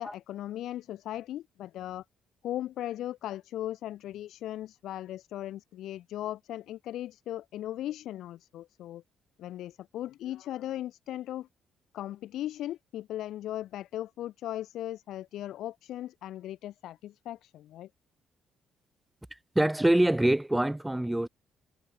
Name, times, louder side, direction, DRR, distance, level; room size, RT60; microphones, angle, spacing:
voice 1, 0.0-2.0 2.4-9.0 9.4-11.5 11.9-17.9, left 13 dB, 80° left, 0.3 m, -38 dB
voice 2, 19.3-21.3, right 1 dB, 10° right, 0.4 m, -25 dB
cardioid pair, 90°, 0 cm